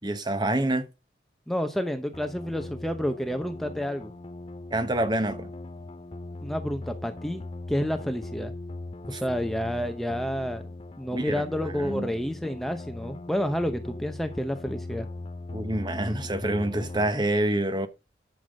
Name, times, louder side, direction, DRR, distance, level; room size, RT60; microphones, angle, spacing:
voice 1, 0.0-0.9 4.7-5.5 9.1-9.2 11.1-11.4 11.8-12.1 15.5-17.9, right 1 dB, 25° right, 1.1 m, -27 dB
voice 2, 1.5-4.1 6.4-8.5 9.1-10.6 11.0-15.1, equal, ahead, 0.8 m, -30 dB
sound 1, 2.1-17.1, left 2 dB, 30° left, 0.5 m, -39 dB
11.0 x 6.9 x 5.3 m
head